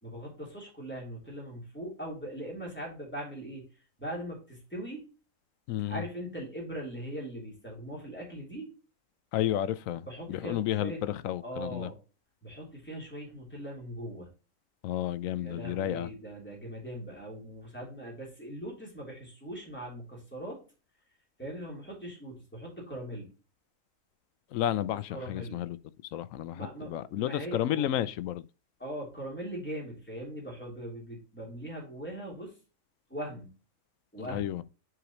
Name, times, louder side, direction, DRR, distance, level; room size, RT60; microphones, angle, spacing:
voice 1, 0.0-3.6 4.0-5.0 5.9-8.7 10.1-11.0 11.4-11.9 12.4-14.3 15.4-20.6 21.4-23.3 25.1-25.6 26.5-27.9 28.8-32.5 33.1-33.5 34.1-34.6, right 1 dB, 10° left, 3.4 m, -40 dB
voice 2, 5.7-6.0 9.3-11.9 14.8-16.1 24.5-25.8 26.1-28.4 34.2-34.6, left 12 dB, 80° left, 1.0 m, -32 dB
7.9 x 5.0 x 3.0 m
omnidirectional pair, 1.4 m